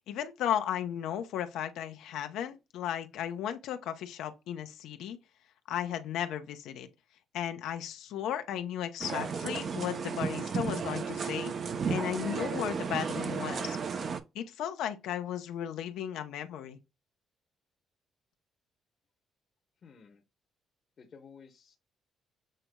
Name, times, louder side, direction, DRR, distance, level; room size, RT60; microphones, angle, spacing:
voice 1, 0.1-5.2 5.7-6.9 7.3-11.5 11.9-13.8 14.3-16.8, left 10 dB, 90° left, 0.7 m, -35 dB
sound 1, 9.0-14.2, right 5 dB, 45° right, 0.6 m, -34 dB
voice 2, 19.8-20.2 21.0-21.8, left 6 dB, 45° left, 0.9 m, -53 dB
7.6 x 2.9 x 2.2 m
cardioid pair, 125°, 0 cm